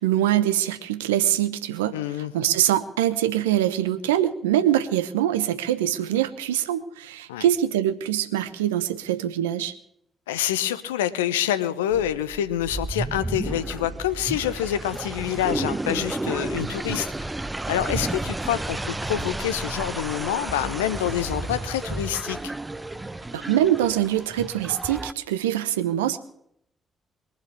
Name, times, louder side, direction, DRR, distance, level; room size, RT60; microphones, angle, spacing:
voice 1, 0.0-9.7 23.3-26.2, right 12 dB, 80° right, 12 dB, 0.9 m, -24 dB
voice 2, 1.9-2.3 7.3-7.4 10.3-17.1 17.7-22.5, left 11 dB, 80° left, 14 dB, 0.8 m, -27 dB
sound 1, 11.9-25.1, right 2 dB, 20° right, 0.9 m, -32 dB
22.0 x 7.4 x 8.6 m, 0.72 s
figure-of-eight pair, 40°, 0 cm